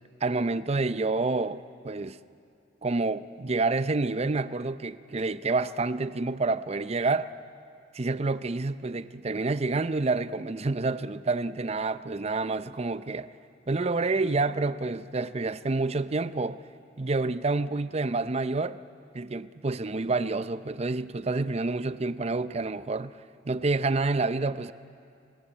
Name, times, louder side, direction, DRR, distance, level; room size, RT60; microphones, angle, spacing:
voice 1, 0.2-2.2 2.8-7.3 7.9-13.3 13.7-16.6 17.0-18.8 19.1-23.2 23.4-24.7, right 3 dB, 35° right, 0.6 m, -28 dB
26.0 x 20.0 x 8.6 m
head